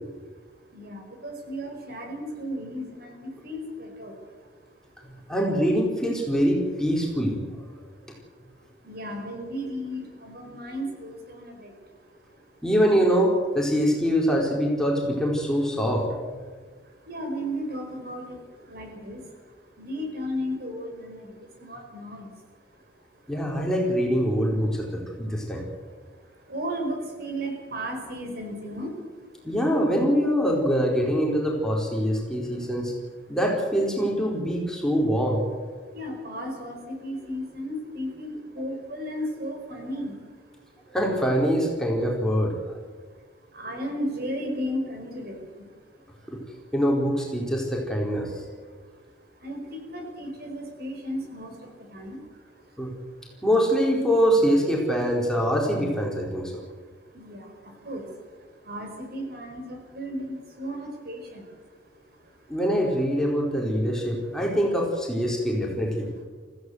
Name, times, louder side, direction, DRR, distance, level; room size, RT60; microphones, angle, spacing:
voice 1, 0.7-3.1 3.4-4.1 8.8-11.7 17.1-18.4 18.7-19.2 19.8-22.3 26.5-28.9 35.9-40.1 43.5-45.4 49.4-52.2 57.1-57.5 57.8-58.1 58.7-61.4, equal, 55° right, 3 dB, 4.9 m, -34 dB
voice 2, 5.3-7.4 12.6-16.1 23.3-25.6 29.4-32.9 33.3-35.4 40.9-42.7 46.3-46.4 46.7-48.3 52.8-52.9 53.4-56.6 62.5-66.1, equal, 5° left, -2 dB, 4.5 m, -24 dB
24.5 x 16.0 x 8.1 m, 1.5 s
head